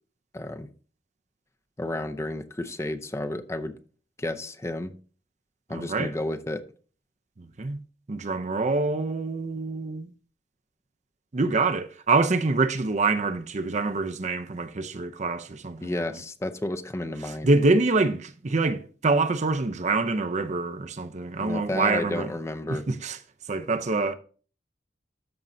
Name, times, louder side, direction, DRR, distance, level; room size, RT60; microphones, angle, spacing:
voice 1, 0.3-0.7 1.8-3.8 4.2-4.9 5.7-6.6 15.8-17.5 21.4-22.8, left 1 dB, 15° left, 0.6 m, -31 dB
voice 2, 5.7-6.1 7.4-7.8 8.1-10.1 11.3-16.2 17.2-22.3 22.7-23.2 23.5-24.1, right 3 dB, 40° right, 0.6 m, -26 dB
13.0 x 5.3 x 2.6 m
head